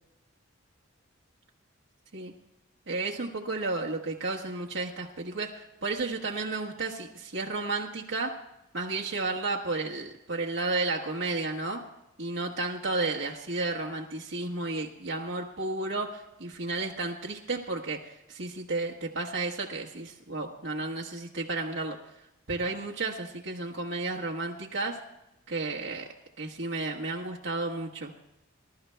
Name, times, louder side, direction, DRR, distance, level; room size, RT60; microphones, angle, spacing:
voice 1, 2.9-8.3 8.7-11.8 12.2-22.0 22.5-25.0 25.5-26.1 26.4-28.1, right 3 dB, 70° right, -3 dB, 1.4 m, -32 dB
26.0 x 13.0 x 2.3 m, 0.89 s
head